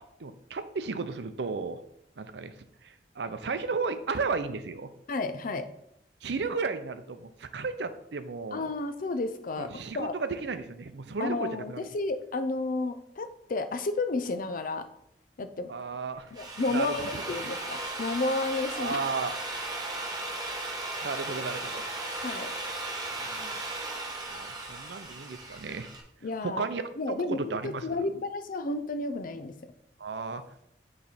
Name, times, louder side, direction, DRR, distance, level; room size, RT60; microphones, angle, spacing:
voice 1, 0.0-1.8 2.2-2.5 2.8-4.9 6.2-8.7 9.6-11.8 15.7-16.3 16.7-17.0 18.8-19.3 21.0-21.9 23.2-23.5 24.3-25.9 26.4-26.8 27.2-28.2 30.0-30.4, right 4 dB, 70° right, 10 dB, 0.6 m, -34 dB
voice 2, 5.1-5.7 8.5-10.1 11.2-14.9 15.4-15.7 16.3-19.0 22.2-22.5 26.2-26.6 27.0-29.6, left 3 dB, 50° left, 10 dB, 0.5 m, -32 dB
Drill, 16.2-26.0, right 2 dB, 25° right, 1.1 m, -36 dB
9.3 x 3.2 x 4.2 m, 0.76 s
head